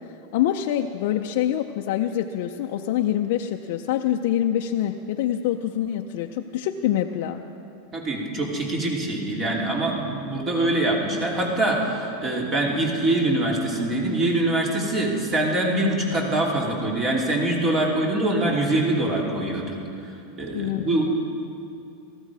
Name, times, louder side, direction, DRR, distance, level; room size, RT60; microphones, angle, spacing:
voice 1, 0.3-7.4 20.5-21.1, left 11 dB, 65° left, 3 dB, 0.6 m, -25 dB
voice 2, 7.9-19.8 20.4-21.1, right 1 dB, 30° right, -1 dB, 2.9 m, -24 dB
18.0 x 14.5 x 4.8 m, 2.7 s
supercardioid pair, 130°, 0 cm